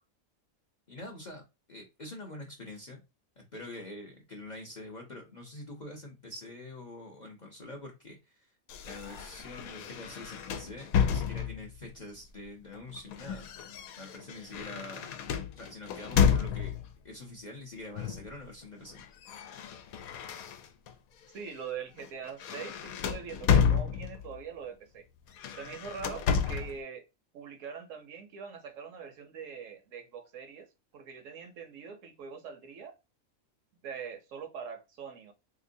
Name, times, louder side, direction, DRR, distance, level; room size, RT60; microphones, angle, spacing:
voice 1, 0.9-1.4 1.7-3.0 3.4-8.5 8.8-13.5 14.0-15.2 15.6-19.0, left 2 dB, 45° left, 0.6 m, -45 dB
sound 1, 8.7-11.8 12.7-16.9 18.0-18.3 18.6-20.9 21.4-21.6 22.0-24.4 25.3-26.8, left 7 dB, 85° left, 1.0 m, -31 dB
voice 2, 21.3-25.1 25.5-27.0 27.3-30.7 30.9-33.0 33.8-35.3, right 6 dB, 70° right, 1.0 m, -43 dB
3.6 x 2.9 x 2.6 m
omnidirectional pair, 1.4 m